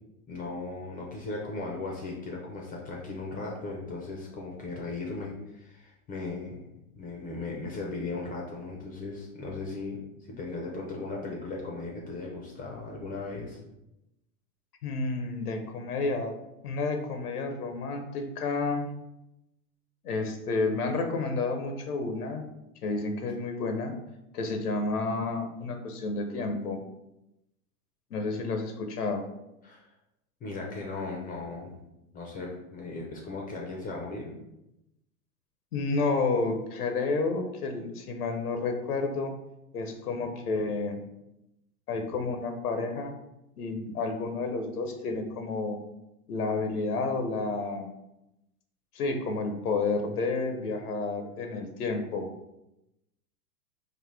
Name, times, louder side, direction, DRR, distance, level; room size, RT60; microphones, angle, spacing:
voice 1, 0.3-6.7 6.9-13.6 29.6-29.9 30.4-31.8 32.1-34.3, left 3 dB, 20° left, -1 dB, 0.5 m, -37 dB
voice 2, 14.8-16.3 16.6-18.9 20.0-22.4 22.8-24.0 24.3-26.8 28.1-29.3 35.7-39.4 39.7-41.0 41.9-43.1 43.6-45.8 46.3-47.9 48.9-52.3, left 3 dB, 90° left, 6 dB, 0.7 m, -30 dB
4.0 x 2.6 x 3.2 m, 0.89 s
hypercardioid pair, 115°, 44 cm